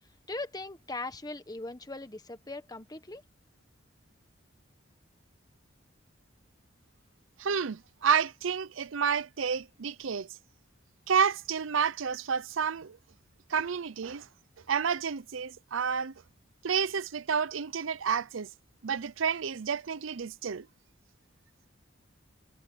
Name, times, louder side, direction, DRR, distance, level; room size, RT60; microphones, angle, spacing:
voice 1, 0.3-3.2, left 2 dB, 20° left, 1.4 m, -39 dB
voice 2, 7.4-10.3 11.1-13.0 13.5-14.3 14.7-16.1 16.6-18.5 18.8-20.7, right 6 dB, 75° right, 0.6 m, -30 dB
head